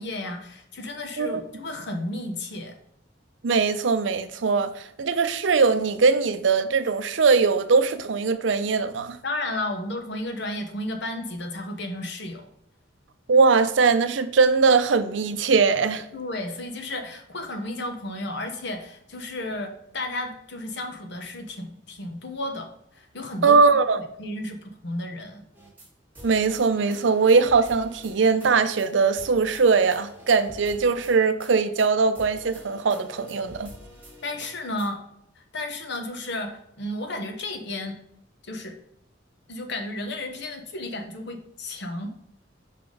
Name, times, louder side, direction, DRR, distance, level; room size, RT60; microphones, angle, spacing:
voice 1, 0.0-2.7 9.2-12.5 16.1-19.7 19.9-25.4 34.2-35.0 35.3-38.0 38.4-38.8 39.5-42.1, left 1 dB, 65° left, 1.1 m, -33 dB
voice 2, 3.4-9.2 13.3-16.0 23.4-24.0 26.2-33.7, right 4 dB, 75° right, 0.6 m, -21 dB
sound 1, 25.5-25.9 26.1-28.5 28.8-28.9 29.1-31.5 31.8-31.9 32.1-34.9, equal, 10° right, 1.9 m, -47 dB
5.7 x 4.2 x 4.8 m
head